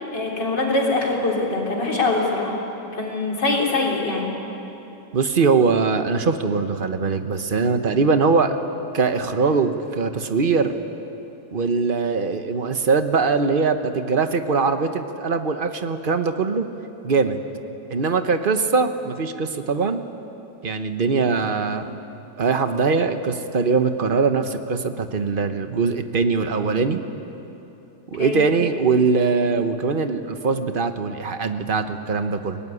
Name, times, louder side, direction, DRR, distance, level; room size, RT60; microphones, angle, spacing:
voice 1, 0.1-2.6 2.9-4.3 28.2-28.4, left 2 dB, 80° left, -2 dB, 4.3 m, -23 dB
voice 2, 5.1-8.6 8.9-10.7 11.5-16.6 17.0-17.4 17.9-20.0 20.6-21.9 22.4-27.0 28.1-32.6, right 4 dB, 35° right, 8 dB, 1.1 m, -21 dB
23.0 x 18.0 x 9.8 m, 3.0 s
omnidirectional pair, 1.9 m